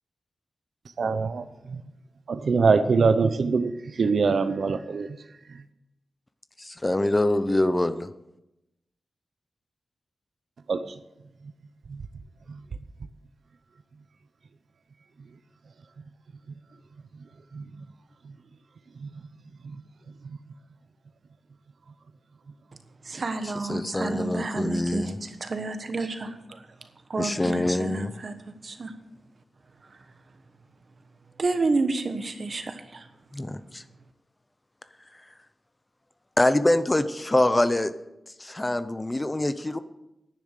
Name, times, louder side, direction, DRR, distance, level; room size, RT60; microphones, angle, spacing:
voice 1, 1.0-1.8 2.3-5.1 5.5-5.6 10.7-10.9 11.9-12.0 17.5-17.6 19.0-19.1 19.7-19.8, right 4 dB, 60° right, 10 dB, 0.7 m, -24 dB
voice 2, 6.6-8.1 23.7-25.2 27.2-28.1 33.3-33.8 36.4-37.9 38.4-39.8, left 1 dB, 15° left, 12 dB, 0.5 m, -24 dB
voice 3, 23.0-26.7 27.1-28.4 28.6-28.9 29.8-30.0 31.4-33.1, right 3 dB, 45° right, 8 dB, 1.3 m, -30 dB
10.5 x 10.0 x 6.6 m, 0.91 s
wide cardioid pair, 145°, 0 cm